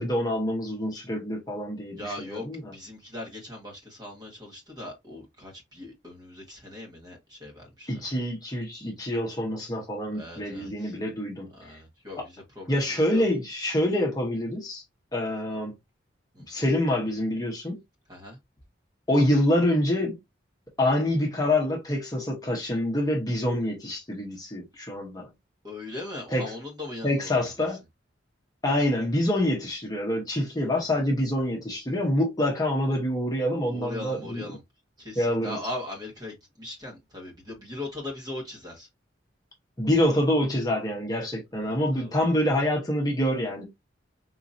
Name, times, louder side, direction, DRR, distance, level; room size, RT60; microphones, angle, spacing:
voice 1, 0.0-2.7 7.9-11.5 12.7-14.8 15.1-15.7 16.5-17.8 19.1-20.2 20.8-25.3 26.3-26.5 27.0-27.8 28.6-34.5 35.1-35.6 39.8-43.6, left 1 dB, 20° left, 1.0 m, -26 dB
voice 2, 2.0-2.5 2.7-7.9 10.1-10.9 11.5-13.2 16.3-16.4 18.1-18.4 25.6-27.5 30.6-30.8 33.6-34.6 35.0-38.9 41.6-42.3, left 2 dB, 20° right, 1.3 m, -39 dB
3.9 x 2.8 x 2.5 m
head